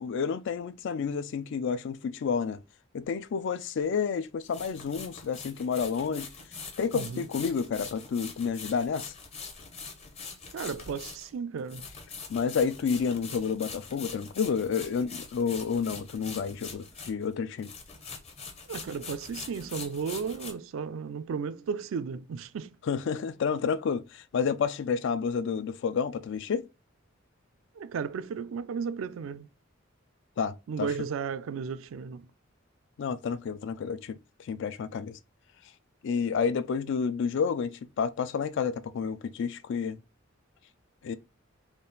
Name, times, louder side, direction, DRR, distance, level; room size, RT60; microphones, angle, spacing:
voice 1, 0.0-2.6 2.9-6.3 6.8-9.1 12.3-17.7 22.9-26.7 30.4-30.9 33.0-34.2 34.5-35.2 36.0-40.0 41.0-41.2, left 6 dB, 60° left, 0.3 m, -30 dB
sound 1, 3.0-3.1 4.4-17.3 17.6-20.5, left 5 dB, 30° left, 0.7 m, -43 dB
voice 2, 6.9-7.3 10.5-11.9 18.7-22.7 27.7-29.5 30.7-32.3, right 6 dB, 70° right, 0.3 m, -34 dB
3.6 x 2.3 x 3.8 m
head